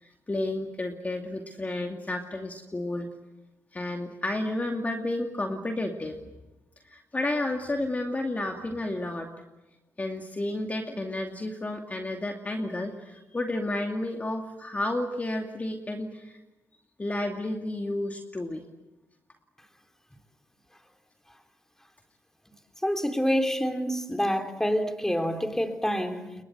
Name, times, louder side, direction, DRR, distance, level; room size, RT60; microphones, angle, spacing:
voice 1, 0.0-3.1 3.7-6.2 6.9-9.3 10.0-16.4 17.0-18.6, left 1 dB, 25° left, 3 dB, 2.5 m, -31 dB
voice 2, 22.8-26.3, equal, 5° left, 5 dB, 3.6 m, -27 dB
28.5 x 22.5 x 8.0 m, 1.1 s
supercardioid pair, 60°, 6 cm